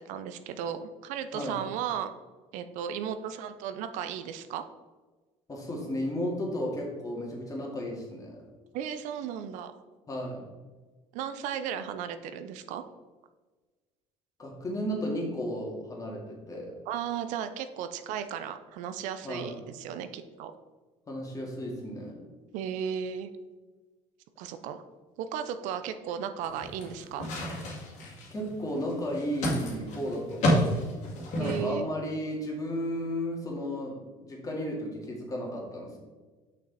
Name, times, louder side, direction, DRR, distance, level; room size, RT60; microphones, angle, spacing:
voice 1, 0.0-2.1 2.5-4.6 8.7-9.8 11.1-12.8 16.9-20.5 22.5-23.3 24.4-24.8 25.2-27.3 31.4-31.9, right 8 dB, 75° right, 10 dB, 0.5 m, -35 dB
voice 2, 5.5-8.4 10.1-10.5 14.4-16.8 19.2-19.6 21.1-22.2 28.3-30.8 31.4-36.0, equal, 25° left, -1 dB, 2.2 m, -34 dB
sound 1, 26.4-31.7, equal, 65° left, 2.3 m, -31 dB
6.4 x 5.4 x 4.1 m, 1.3 s
supercardioid pair, 95°, 13 cm